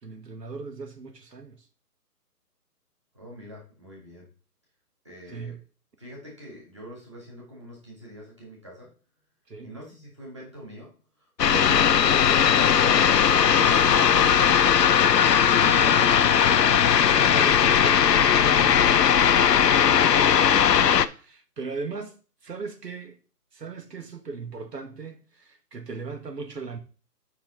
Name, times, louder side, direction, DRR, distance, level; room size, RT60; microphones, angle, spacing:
voice 1, 0.0-1.6 5.3-5.6 9.5-9.7 15.6-16.2 17.2-18.9 20.8-22.1 22.4-23.2 23.5-26.8, right 4 dB, 85° right, 1.7 m, -38 dB
voice 2, 3.1-4.3 5.0-5.6 6.0-8.9 9.6-10.9 11.2-14.3 17.6-20.2, equal, 20° right, 1.8 m, -42 dB
sound 1, 11.4-21.1, left 8 dB, 90° left, 0.7 m, -18 dB
7.2 x 5.8 x 4.0 m
hypercardioid pair, 180°, 47 cm